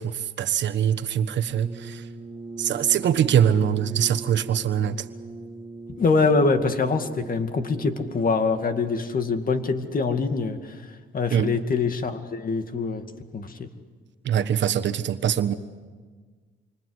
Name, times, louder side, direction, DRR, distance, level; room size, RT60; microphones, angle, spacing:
voice 1, 0.0-2.0 2.6-5.1 11.3-11.5 14.2-15.5, right 9 dB, 65° right, 9 dB, 1.3 m, -23 dB
Brass instrument, 1.4-8.6, right 3 dB, 25° right, 5.7 m, -40 dB
voice 2, 5.9-10.8 11.1-13.0 13.3-13.7, left 4 dB, 45° left, 7 dB, 2.3 m, -24 dB
28.0 x 25.5 x 8.1 m, 1.5 s
cardioid pair, 90°, 20 cm